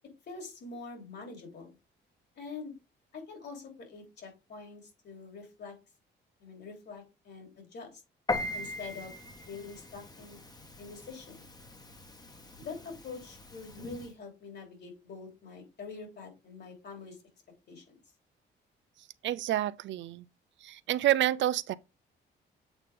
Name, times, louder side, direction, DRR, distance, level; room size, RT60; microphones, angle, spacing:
voice 1, 0.3-1.7 2.3-2.7 3.1-5.7 6.4-8.0 8.5-9.1 9.5-10.4 10.8-11.5 12.6-17.2 17.7-17.9, left 4 dB, 60° left, 3.3 m, -45 dB
Piano, 8.3-14.1, left 2 dB, 20° left, 1.2 m, -40 dB
voice 2, 19.2-20.2 20.6-21.7, right 13 dB, 70° right, 0.4 m, -28 dB
8.0 x 4.1 x 3.6 m
cardioid pair, 90°, 20 cm